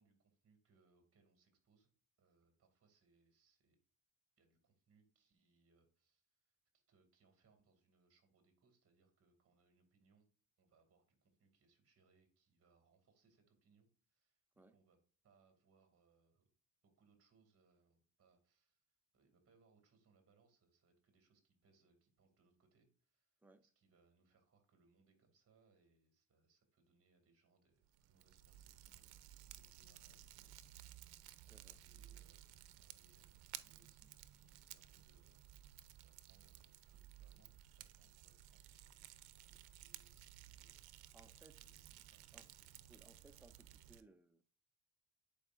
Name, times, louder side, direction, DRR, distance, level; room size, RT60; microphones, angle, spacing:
voice 1, 0.0-1.9 2.2-3.8 4.4-6.6 6.9-10.3 10.6-15.0 15.2-16.5 16.8-29.1 29.5-30.5 31.8-35.5 36.0-40.8 41.5-42.7, right 4 dB, 35° right, 2.4 m, -75 dB
Fire, 27.8-44.0, right 13 dB, 70° right, 0.7 m, -57 dB
voice 2, 31.4-31.8 41.1-41.6 42.3-42.5 42.9-44.6, right 2 dB, 5° right, 0.5 m, -65 dB
10.0 x 4.5 x 2.5 m
cardioid pair, 110°, 40 cm